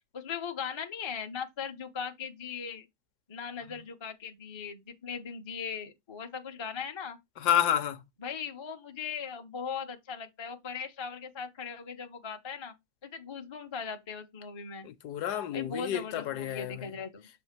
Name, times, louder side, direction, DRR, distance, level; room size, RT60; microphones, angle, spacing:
voice 1, 0.1-2.8 3.3-7.2 8.2-12.7 13.0-14.9 15.5-17.3, left 6 dB, 45° left, 0.3 m, -39 dB
voice 2, 7.4-8.0 14.8-16.9, left 10 dB, 70° left, 1.2 m, -30 dB
6.9 x 2.7 x 5.8 m
omnidirectional pair, 1.9 m